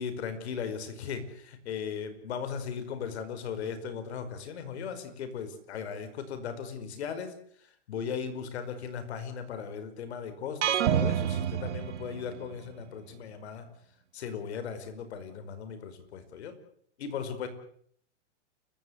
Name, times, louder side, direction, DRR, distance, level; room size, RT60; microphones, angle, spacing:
voice 1, 0.0-7.4 7.9-13.7 14.1-16.5 17.0-17.5, left 7 dB, 65° left, 10 dB, 5.3 m, -37 dB
sound 1, 10.6-12.6, right 9 dB, 75° right, 1.9 m, -28 dB
30.0 x 15.5 x 8.1 m, 0.63 s
supercardioid pair, 165°, 35 cm